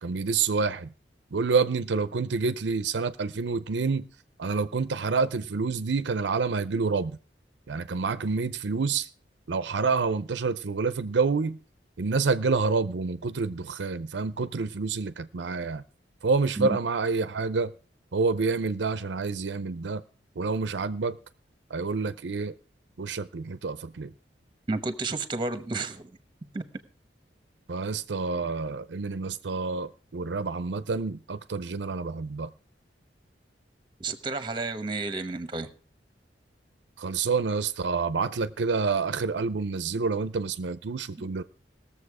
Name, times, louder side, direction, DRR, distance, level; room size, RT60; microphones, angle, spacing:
voice 1, 0.0-0.9 1.3-4.1 4.4-7.2 7.7-9.1 9.5-11.6 12.0-15.8 16.2-17.7 18.1-20.0 20.4-21.2 21.7-22.5 23.0-24.1 27.7-32.5 37.0-41.4, right 4 dB, 75° right, 0.6 m, -28 dB
voice 2, 24.7-26.1 26.5-26.6 34.0-35.7 41.2-41.3, right 3 dB, 25° right, 1.1 m, -31 dB
18.5 x 7.1 x 4.8 m
head